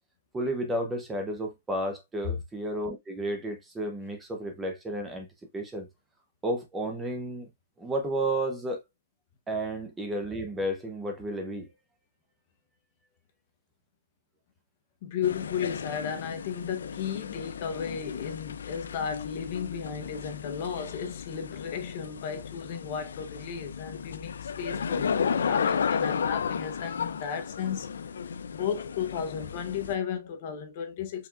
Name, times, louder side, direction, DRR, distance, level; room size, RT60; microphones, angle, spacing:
voice 1, 0.3-5.3 5.5-5.9 6.4-7.5 7.8-8.8 9.5-11.7, right 1 dB, 10° right, 0.7 m, -32 dB
voice 2, 15.0-27.9 28.5-31.3, left 7 dB, 40° left, 0.9 m, -34 dB
sound 1, 15.2-30.0, left 6 dB, 80° left, 0.4 m, -33 dB
4.6 x 3.5 x 2.4 m
hypercardioid pair, 160°, 0 cm